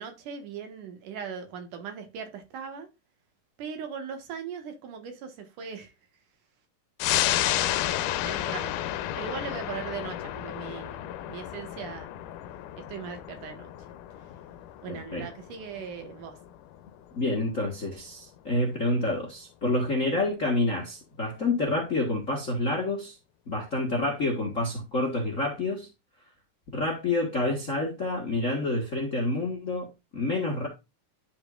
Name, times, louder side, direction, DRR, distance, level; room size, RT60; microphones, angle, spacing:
voice 1, 0.0-2.9 3.6-5.9 8.3-12.1 12.8-13.7 14.8-16.4, right 6 dB, 80° right, 3.0 m, -39 dB
sound 1, 7.0-18.0 18.4-18.5, left 13 dB, 85° left, 2.1 m, -32 dB
voice 2, 14.9-15.3 17.1-23.2 23.5-25.9 26.7-30.7, left 2 dB, 35° left, 1.3 m, -28 dB
11.5 x 5.2 x 2.4 m
omnidirectional pair, 3.6 m